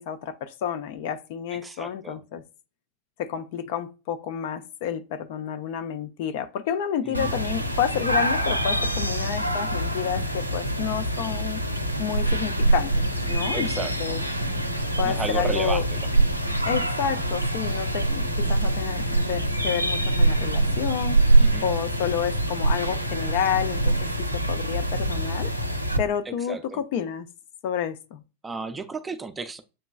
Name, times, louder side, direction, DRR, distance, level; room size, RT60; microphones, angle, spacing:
voice 1, 0.0-2.4 3.2-11.6 12.0-12.9 13.3-14.2 15.0-15.9 16.7-25.5 26.0-27.3 27.6-28.2, left 8 dB, 50° left, 0.5 m, -30 dB
voice 2, 1.5-2.2 7.0-7.3 11.2-11.4 13.5-14.2 15.0-15.9 21.4-21.6 26.3-26.8 28.4-29.6, right 4 dB, 15° right, 0.5 m, -33 dB
sound 1, 7.1-26.0, right 1 dB, 90° right, 0.5 m, -24 dB
7.4 x 3.0 x 2.3 m
figure-of-eight pair, 90°, 0 cm